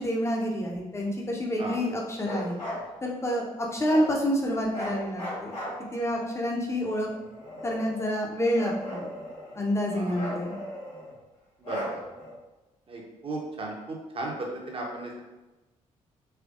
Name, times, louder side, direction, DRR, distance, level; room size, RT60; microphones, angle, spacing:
voice 1, 0.0-2.6 3.0-5.5 5.9-7.1 7.6-9.1 9.5-10.5, equal, 15° left, -1 dB, 0.7 m, -28 dB
Bark, 2.2-2.8 3.8-4.1 4.7-6.2 7.0-8.0 8.5-9.6 10.1-11.1 11.6-12.3, left 1 dB, 80° left, 1.3 m, -37 dB
voice 2, 11.6-12.0 12.9-15.2, right 2 dB, 30° right, -1 dB, 0.9 m, -35 dB
3.5 x 3.3 x 2.4 m, 1.1 s
figure-of-eight pair, 40°, 17 cm